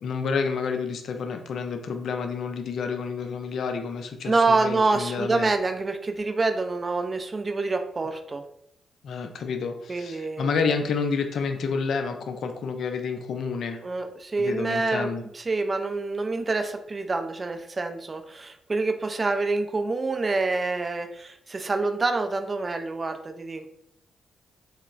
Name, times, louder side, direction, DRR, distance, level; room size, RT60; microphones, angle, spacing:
voice 1, 0.0-5.5 9.0-13.8 14.4-15.2, left 5 dB, 65° left, 6 dB, 0.3 m, -29 dB
voice 2, 4.2-8.4 9.9-10.5 13.8-15.1 15.3-23.7, right 3 dB, 35° right, 6 dB, 0.3 m, -26 dB
2.9 x 2.0 x 2.3 m, 0.75 s
hypercardioid pair, 45°, 0 cm